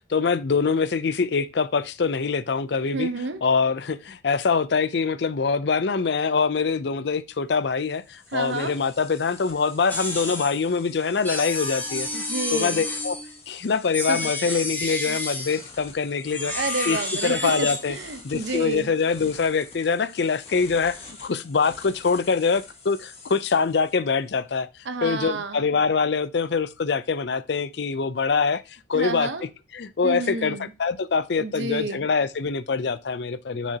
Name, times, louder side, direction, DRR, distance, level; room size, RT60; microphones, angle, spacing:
voice 1, 0.1-3.1 3.4-12.1 12.5-13.2 13.5-16.5 16.9-18.0 18.2-24.7 25.0-28.6 28.9-29.3 29.7-33.8, left 5 dB, 60° left, 0.5 m, -24 dB
voice 2, 2.9-3.4 8.3-8.8 12.1-12.8 14.1-14.7 15.1-15.2 16.5-18.9 24.8-25.6 28.9-29.5 30.0-30.7 31.4-32.1, right 3 dB, 70° right, 0.9 m, -30 dB
sound 1, 7.4-24.6, left 3 dB, 35° left, 1.6 m, -47 dB
sound 2, 9.9-10.6 11.2-13.4 13.9-15.6 16.2-17.8, left 2 dB, 10° left, 1.5 m, -30 dB
6.6 x 6.2 x 2.8 m
head